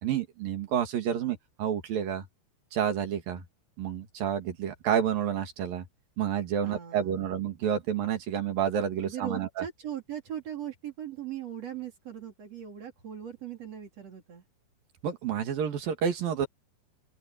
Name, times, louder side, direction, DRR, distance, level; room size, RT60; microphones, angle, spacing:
voice 1, 0.0-2.3 2.7-3.4 3.8-5.9 6.2-9.6 15.0-16.5, right 9 dB, 60° right, 3.6 m, -29 dB
voice 2, 6.6-7.3 9.0-14.4, right 9 dB, 40° right, 3.7 m, -39 dB
open air
omnidirectional pair, 4.8 m